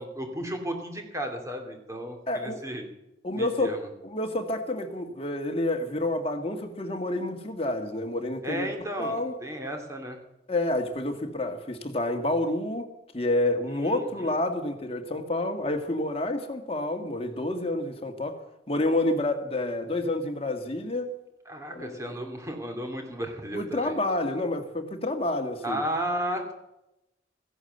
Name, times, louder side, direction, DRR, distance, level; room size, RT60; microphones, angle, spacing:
voice 1, 0.0-2.9 3.3-3.8 8.4-10.2 13.7-14.3 21.5-24.0 25.6-26.5, equal, 15° right, 3 dB, 2.5 m, -34 dB
voice 2, 2.3-2.6 3.2-3.8 4.0-8.7 9.0-9.4 10.5-12.9 13.1-18.4 18.7-21.1 21.7-22.1 23.5-25.8, left 1 dB, 30° left, 5 dB, 1.7 m, -29 dB
15.0 x 11.0 x 7.9 m, 0.90 s
head